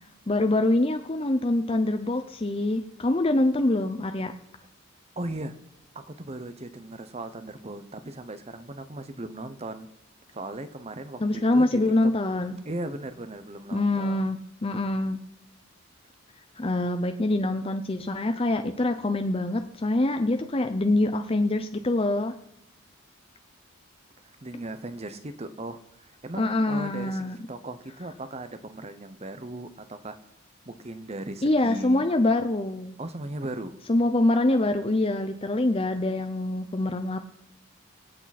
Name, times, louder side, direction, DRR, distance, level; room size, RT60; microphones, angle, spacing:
voice 1, 0.3-4.3 11.2-12.6 13.7-15.2 16.6-22.3 26.4-27.4 31.4-32.9 33.9-37.2, left 2 dB, 25° left, 7 dB, 0.6 m, -25 dB
voice 2, 5.2-5.6 5.9-9.9 10.3-12.1 12.6-14.2 24.2-30.2 30.7-32.0 33.0-33.8, right 1 dB, 30° right, 10 dB, 0.9 m, -37 dB
24.5 x 8.7 x 4.2 m, 0.80 s
head